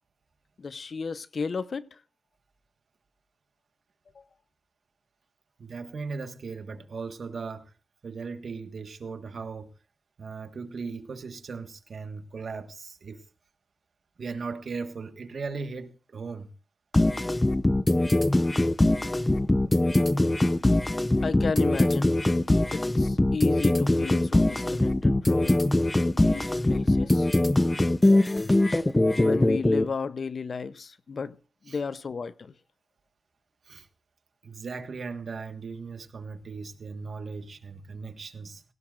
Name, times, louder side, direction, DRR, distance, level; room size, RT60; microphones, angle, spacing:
voice 1, 0.6-1.9 21.2-22.1 22.7-25.7 26.1-27.3 29.2-31.4 31.7-32.5, left 5 dB, 65° left, 0.7 m, -33 dB
voice 2, 5.6-7.7 8.0-9.7 10.2-13.2 14.2-16.5 31.7-31.8 33.7-33.9 34.4-38.6, right 4 dB, 70° right, 1.5 m, -38 dB
sound 1, 16.9-29.9, left 1 dB, 20° left, 0.7 m, -22 dB
17.5 x 16.5 x 2.5 m
cardioid pair, 65°, 0 cm